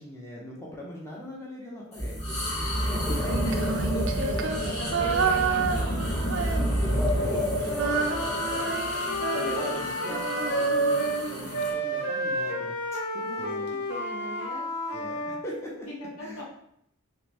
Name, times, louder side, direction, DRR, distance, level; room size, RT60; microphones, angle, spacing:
voice 1, 0.0-3.2 6.8-7.5 8.2-8.7 9.3-12.7 13.4-13.7 14.9-15.9 16.2-16.4, equal, 15° left, -3 dB, 0.7 m, -40 dB
sound 1, 1.9-11.7, equal, 30° left, 1.3 m, -29 dB
voice 2, 2.6-6.2 6.9-7.8 13.2-13.5 13.9-14.7 15.9-16.4, equal, 85° left, -3 dB, 1.2 m, -40 dB
Female singing, 3.2-7.1 7.4-11.7, right 5 dB, 60° right, 0.4 m, -30 dB
Wind instrument woodwind instrument, 7.6-11.2 11.5-15.4, right 1 dB, 55° left, 0.8 m, -30 dB
3.5 x 3.0 x 3.1 m, 0.72 s
head